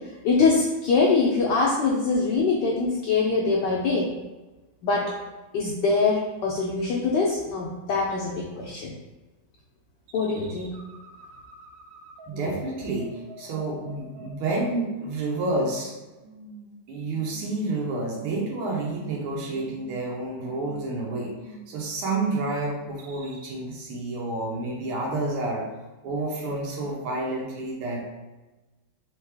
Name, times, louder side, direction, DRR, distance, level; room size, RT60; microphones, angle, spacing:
voice 1, 0.0-4.1 4.8-5.1 5.5-8.9 10.1-10.7, left 4 dB, 75° left, -3 dB, 1.0 m, -23 dB
sound 1, 10.1-15.1 15.4-15.9 16.2-16.8 17.1-17.5 17.9-18.5 18.8-19.3 19.6-20.1 20.5-20.9 21.3-21.8 22.2-22.6 23.0-23.5, right 2 dB, 70° right, 1.2 m, -46 dB
voice 2, 12.3-15.9 16.9-25.7 26.0-28.0, right 2 dB, 90° right, -3 dB, 1.7 m, -29 dB
3.8 x 3.2 x 3.3 m, 1.1 s
omnidirectional pair, 2.3 m